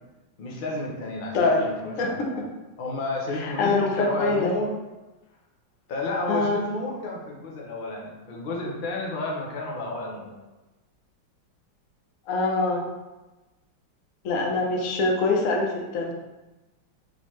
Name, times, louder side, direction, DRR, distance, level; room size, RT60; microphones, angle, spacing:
voice 1, 0.4-2.4 2.8-4.7 5.9-10.4 14.5-14.6, left 2 dB, 85° left, -2 dB, 0.4 m, -31 dB
voice 2, 3.4-4.5 6.3-6.6 12.3-12.8 14.2-16.1, left 3 dB, 60° left, 0 dB, 0.9 m, -24 dB
3.9 x 3.9 x 3.1 m, 1.1 s
omnidirectional pair, 2.1 m